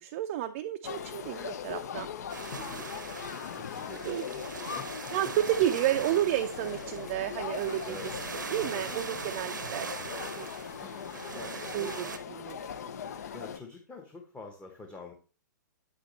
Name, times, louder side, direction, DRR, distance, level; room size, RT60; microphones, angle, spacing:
voice 1, 0.0-2.1 2.6-2.8 3.8-4.2 5.1-7.9 8.5-9.9 10.3-10.5 11.1-12.6, right 12 dB, 40° right, 7 dB, 0.5 m, -31 dB
sound 1, 0.8-13.6, left 8 dB, 55° left, 0.7 m, -40 dB
sound 2, 2.3-12.2, right 5 dB, 75° right, 0.8 m, -41 dB
voice 2, 3.5-4.9 7.8-8.1 10.8-10.9 11.3-11.5 11.8-11.9 13.3-15.1, left 3 dB, 10° left, 2 dB, 1.0 m, -46 dB
8.1 x 6.2 x 3.1 m, 0.37 s
figure-of-eight pair, 115°, 10 cm